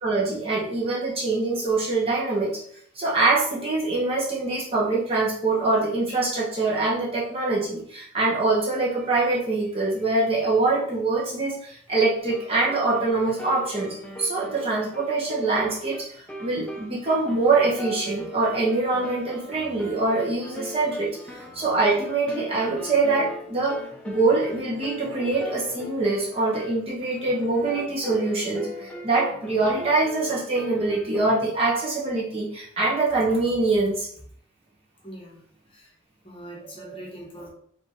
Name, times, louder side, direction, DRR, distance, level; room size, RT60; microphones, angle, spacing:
voice 1, 0.0-2.6 2.9-23.8 24.0-34.1 36.6-37.0, right 3 dB, 30° right, -6 dB, 1.1 m, -24 dB
sound 1, 12.2-31.4, left 1 dB, 5° left, 0.6 m, -39 dB
voice 2, 35.0-35.4 35.7-35.9 36.2-37.5, equal, 25° left, -3 dB, 1.0 m, -42 dB
5.1 x 2.8 x 3.0 m, 0.63 s
head